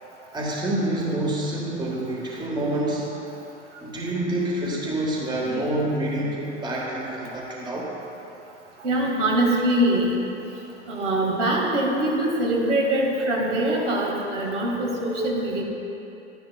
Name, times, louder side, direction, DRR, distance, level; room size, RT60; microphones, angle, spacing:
voice 1, 0.3-3.1 3.8-7.9, right 1 dB, 10° right, -3 dB, 1.5 m, -27 dB
voice 2, 8.8-10.2 10.9-15.6, right 1 dB, 75° right, -3 dB, 2.2 m, -23 dB
12.5 x 10.5 x 2.3 m, 2.9 s
figure-of-eight pair, 90°, 36 cm